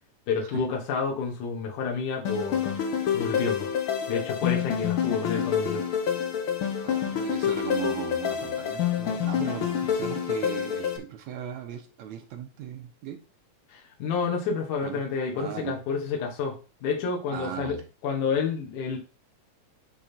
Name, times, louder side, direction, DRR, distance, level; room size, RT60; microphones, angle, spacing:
voice 1, 0.3-2.8 3.1-3.7 4.1-5.8 13.7-17.8 18.0-19.0, left 5 dB, 80° left, 1 dB, 2.8 m, -29 dB
sound 1, 2.2-11.0, left 8 dB, 60° left, 1.5 m, -27 dB
voice 2, 6.8-13.2 14.8-15.0 15.3-15.8 17.3-17.8, right 10 dB, 75° right, 5 dB, 2.1 m, -37 dB
8.8 x 3.7 x 4.3 m, 0.33 s
omnidirectional pair, 3.5 m